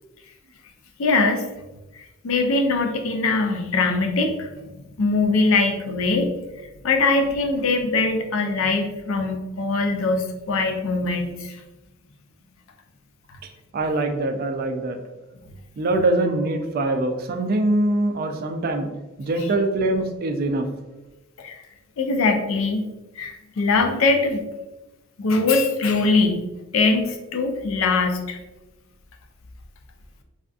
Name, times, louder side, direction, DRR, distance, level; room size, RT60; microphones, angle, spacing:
voice 1, 1.0-1.4 2.0-6.3 6.6-11.6 21.4-21.5 22.0-22.9 23.2-24.4 25.2-26.4 26.7-28.4, left 3 dB, 75° left, 4 dB, 0.4 m, -22 dB
voice 2, 13.4-15.0 15.8-18.9 19.2-20.7, right 2 dB, 45° right, 6 dB, 0.3 m, -23 dB
3.4 x 2.6 x 2.3 m, 1.1 s
head